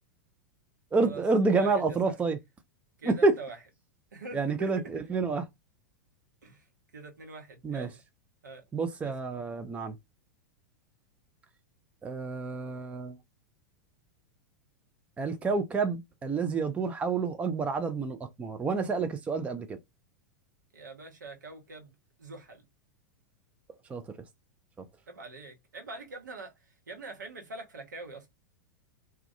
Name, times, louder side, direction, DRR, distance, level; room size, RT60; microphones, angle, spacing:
voice 1, 0.9-2.4 3.0-3.4 4.3-5.4 7.6-7.9 8.7-10.0 12.0-13.2 15.2-19.8 23.9-24.0 24.8-24.9, right 4 dB, 15° right, 0.4 m, -28 dB
voice 2, 1.5-2.1 3.0-3.6 4.1-4.9 6.4-6.7 6.9-8.0 8.4-8.6 9.0-9.1 20.7-22.6 25.1-28.3, right 3 dB, 75° right, 1.0 m, -44 dB
2.3 x 2.2 x 2.6 m
figure-of-eight pair, 95°, 10 cm